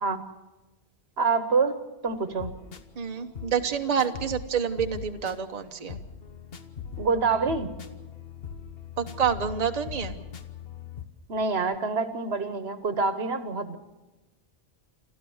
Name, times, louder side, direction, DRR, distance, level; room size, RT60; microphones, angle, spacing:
voice 1, 1.2-2.5 7.0-7.7 11.3-13.8, right 4 dB, 70° right, 11 dB, 1.4 m, -26 dB
sound 1, 2.1-11.1, left 7 dB, 60° left, 1.3 m, -41 dB
voice 2, 3.0-6.0 9.0-10.2, right 7 dB, 40° right, 5 dB, 1.1 m, -28 dB
28.0 x 13.0 x 7.1 m, 1.1 s
omnidirectional pair, 1.1 m